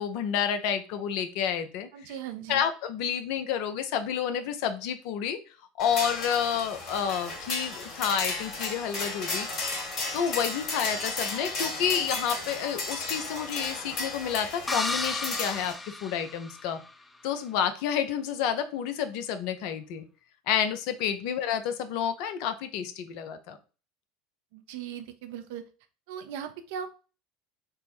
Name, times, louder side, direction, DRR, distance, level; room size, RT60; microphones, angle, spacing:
voice 1, 0.0-1.9 2.5-5.4 5.8-9.5 10.1-15.7 16.0-16.8 17.2-20.1 20.5-23.6, left 8 dB, 65° left, 9 dB, 0.5 m, -29 dB
voice 2, 1.9-2.7 21.3-21.4 24.5-25.6 26.1-26.9, right 8 dB, 70° right, 8 dB, 0.5 m, -38 dB
sound 1, 5.8-15.7, left 3 dB, 50° left, 1.8 m, -34 dB
sound 2, 14.7-16.9, left 2 dB, 15° left, 0.4 m, -33 dB
3.5 x 2.1 x 4.3 m, 0.35 s
hypercardioid pair, 80°, 0 cm